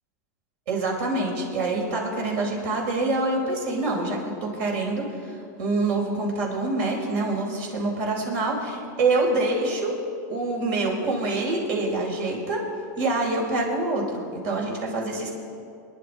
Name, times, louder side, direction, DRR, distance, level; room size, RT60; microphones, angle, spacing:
voice 1, 0.7-10.0 10.3-12.6 13.0-15.3, right 2 dB, 60° right, 0 dB, 5.0 m, -26 dB
26.5 x 11.0 x 4.4 m, 2.4 s
supercardioid pair, 140°, 10 cm